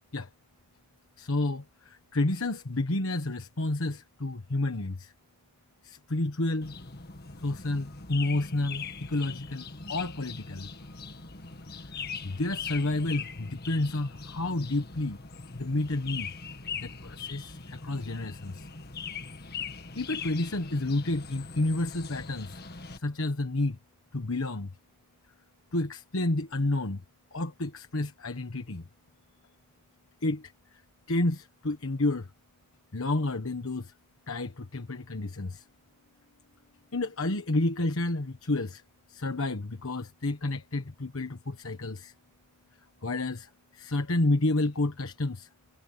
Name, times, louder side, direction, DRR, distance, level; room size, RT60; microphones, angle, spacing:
voice 1, 1.2-5.1 5.8-6.7 7.4-10.7 12.2-15.2 15.5-16.3 16.8-18.6 20.0-22.6 23.0-23.8 24.1-24.7 25.7-27.0 27.3-28.8 30.2-30.5 31.1-32.3 32.9-33.9 34.3-35.6 36.9-38.8 39.1-42.1 43.0-45.5, left 2 dB, 70° left, 1.3 m, -30 dB
sound 1, 6.6-23.0, left 5 dB, 45° left, 1.7 m, -41 dB
head